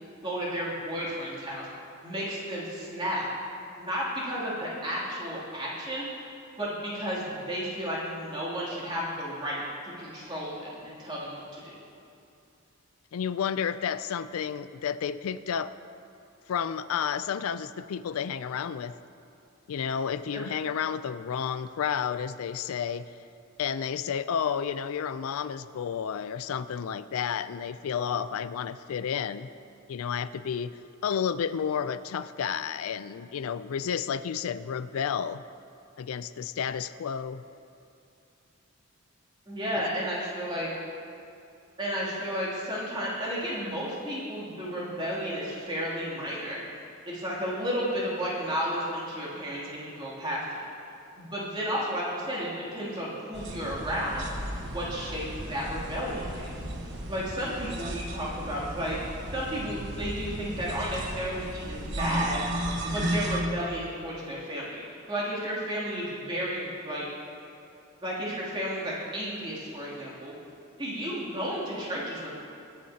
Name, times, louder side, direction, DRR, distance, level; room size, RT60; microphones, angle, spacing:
voice 1, 0.2-1.7 2.0-3.3 3.8-6.0 6.6-9.6 10.0-11.8 20.3-20.4 39.5-40.7 41.8-46.6 47.1-50.6 51.2-54.2 54.6-56.5 57.1-59.0 59.3-62.4 62.9-64.8 65.1-67.1 68.0-70.3 70.8-72.3, equal, 25° right, -7 dB, 2.8 m, -32 dB
voice 2, 13.1-15.7 16.5-19.0 19.7-23.1 23.6-29.5 29.9-35.4 36.0-37.4 39.7-39.8, left 7 dB, 85° left, 14 dB, 0.4 m, -31 dB
sound 1, 53.3-63.4, right 1 dB, 55° right, 1.2 m, -35 dB
21.0 x 9.4 x 2.8 m, 2.6 s
head